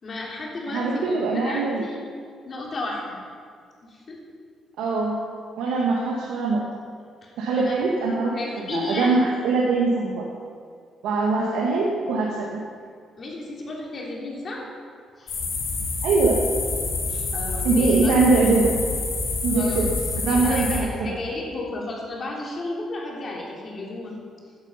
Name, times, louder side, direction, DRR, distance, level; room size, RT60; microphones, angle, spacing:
voice 1, 0.0-2.0 2.4-3.2 3.8-4.2 5.7-5.8 7.2-7.7 8.3-9.2 13.2-14.7 15.2-15.4 17.1-18.1 19.5-19.9 20.2-24.1, left 2 dB, 45° left, -2 dB, 3.4 m, -33 dB
voice 2, 0.7-1.8 4.8-6.8 7.4-8.4 8.7-10.3 11.0-12.6 16.0-16.4 17.6-18.7 19.4-19.9 20.3-21.2, right 3 dB, 85° right, -3 dB, 1.7 m, -22 dB
sound 1, 15.3-20.8, left 3 dB, 70° left, 4.4 m, -27 dB
15.0 x 9.6 x 5.7 m, 2.1 s
cardioid pair, 90°, 0 cm